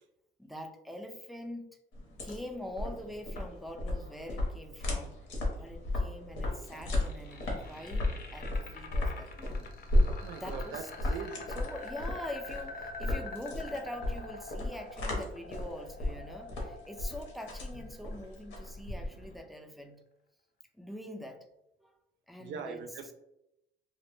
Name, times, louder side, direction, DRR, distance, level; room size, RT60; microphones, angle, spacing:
voice 1, 0.4-1.7 2.2-5.1 5.6-9.7 10.3-11.1 11.5-20.0 20.7-21.4 21.8-21.9 22.3-23.0, left 1 dB, ahead, 4 dB, 0.3 m, -44 dB
sound 1, 1.9-19.4, left 1 dB, 80° left, 0.8 m, -34 dB
sound 2, 6.6-18.7, left 4 dB, 50° left, 0.5 m, -46 dB
voice 2, 10.2-10.8 11.1-11.5 22.4-23.1, right 6 dB, 70° right, 7 dB, 0.4 m, -41 dB
2.1 x 2.1 x 3.0 m, 0.85 s
cardioid pair, 90°, 20 cm